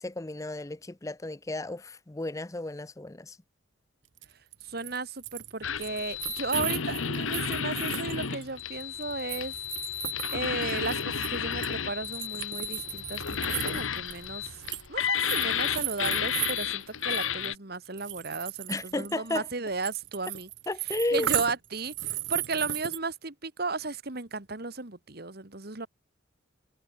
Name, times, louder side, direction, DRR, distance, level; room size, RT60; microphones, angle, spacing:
voice 1, 0.0-3.4 18.7-19.5 20.7-21.3, left 2 dB, 15° left, 0.6 m, -33 dB
sound 1, 4.2-4.3 4.5-5.5 5.8-11.7 12.0-14.9 15.1-17.5 17.9-23.0, right 13 dB, 70° right, 1.4 m, -36 dB
voice 2, 4.6-9.5 10.3-14.5 14.9-20.5 21.1-25.9, right 3 dB, 50° right, 1.9 m, -35 dB
sound 2, 5.6-17.5, left 8 dB, 85° left, 1.3 m, -32 dB
head